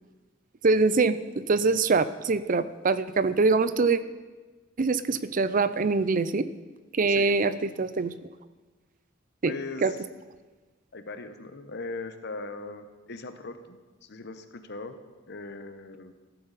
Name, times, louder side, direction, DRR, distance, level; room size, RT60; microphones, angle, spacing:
voice 1, 0.6-4.0 4.8-6.5 6.9-8.1 9.4-9.5 9.8-9.9, right 4 dB, 45° right, 14 dB, 0.5 m, -24 dB
voice 2, 9.4-10.0 10.9-15.0 15.3-16.1, left 3 dB, 60° left, 9 dB, 1.0 m, -39 dB
15.0 x 13.5 x 4.1 m, 1.3 s
head